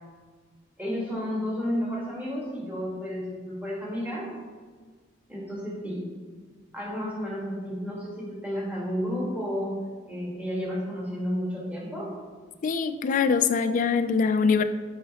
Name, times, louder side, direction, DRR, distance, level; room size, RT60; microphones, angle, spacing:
voice 1, 0.8-4.3 5.3-6.0 6.7-9.8 10.1-12.1, equal, 10° right, -5 dB, 1.4 m, -31 dB
voice 2, 12.6-14.6, left 5 dB, 40° left, 10 dB, 0.3 m, -23 dB
7.3 x 4.9 x 2.8 m, 1.5 s
head